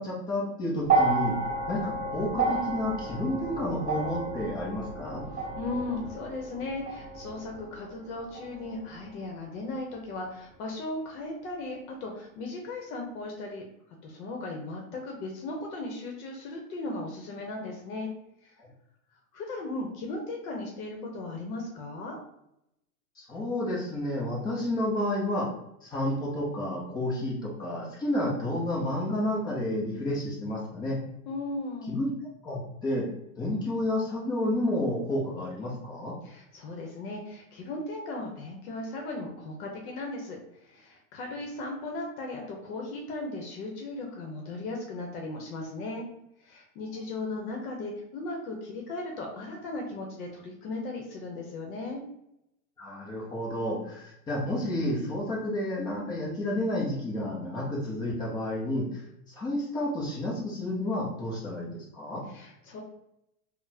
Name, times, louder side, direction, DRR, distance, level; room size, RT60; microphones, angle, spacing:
voice 1, 0.0-1.3 1.7-5.2 18.6-18.7 23.2-25.5 25.8-31.0 31.9-32.1 32.4-33.0 33.4-36.1 52.8-58.8 59.3-62.2, left 1 dB, 10° left, -4 dB, 0.3 m, -30 dB
sound 1, 0.8-9.2 10.2-10.3, right 3 dB, 15° right, 0.8 m, -31 dB
voice 2, 5.3-13.6 14.0-18.1 18.4-18.5 19.3-22.2 31.3-32.0 36.2-46.0 46.4-52.0 62.3-62.8, left 2 dB, 65° left, 1 dB, 0.8 m, -37 dB
3.7 x 2.0 x 2.7 m, 0.82 s
supercardioid pair, 130°, 46 cm